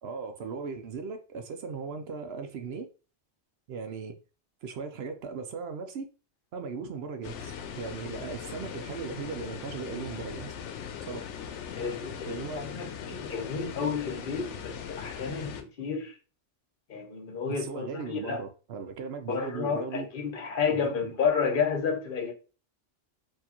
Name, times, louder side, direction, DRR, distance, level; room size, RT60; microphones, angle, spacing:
voice 1, 0.0-2.9 3.7-4.2 4.6-6.1 6.5-7.5 7.8-10.5 11.1-11.3 12.3-12.6 13.0-13.2 17.5-20.1 20.7-21.1, right 5 dB, 65° right, 0.7 m, -37 dB
sound 1, 7.2-15.6, left 7 dB, 75° left, 0.9 m, -40 dB
voice 2, 11.8-16.1 16.9-18.4 19.3-22.3, left 6 dB, 50° left, 0.9 m, -31 dB
4.5 x 2.6 x 2.9 m
omnidirectional pair, 1.2 m